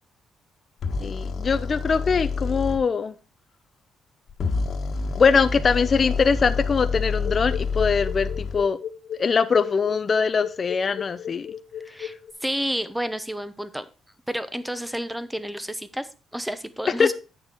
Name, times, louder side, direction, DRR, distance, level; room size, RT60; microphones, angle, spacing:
sound 1, 0.8-2.8 4.3-8.6, left 4 dB, 60° left, 1.5 m, -28 dB
voice 1, 1.0-3.1 5.2-8.8 9.2-11.5 17.0-17.1, left 5 dB, 40° left, 11 dB, 0.6 m, -22 dB
sound 2, 7.2-12.3, left 9 dB, 75° left, 0.8 m, -35 dB
voice 2, 12.4-13.8 14.3-17.1, equal, 5° right, 13 dB, 0.8 m, -30 dB
8.7 x 6.6 x 4.5 m, 0.33 s
cardioid pair, 90°, 0 cm